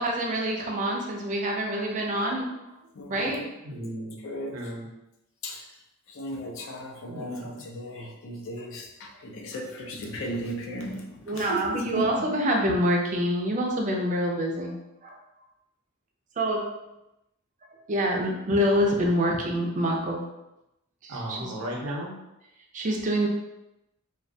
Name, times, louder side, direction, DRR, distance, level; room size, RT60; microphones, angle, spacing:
voice 1, 0.0-2.6 3.1-3.5 11.3-15.2 16.4-16.8 17.9-20.3 21.0-21.5 22.7-23.3, equal, 35° right, 1 dB, 0.4 m, -26 dB
voice 2, 3.0-3.4 4.2-4.6 5.4-5.6 6.1-12.5, equal, 65° left, 1 dB, 0.4 m, -36 dB
voice 3, 3.6-4.2 4.5-4.9 7.1-7.5 21.1-22.1, equal, 85° right, -2 dB, 0.7 m, -35 dB
2.3 x 2.2 x 2.6 m, 0.90 s
head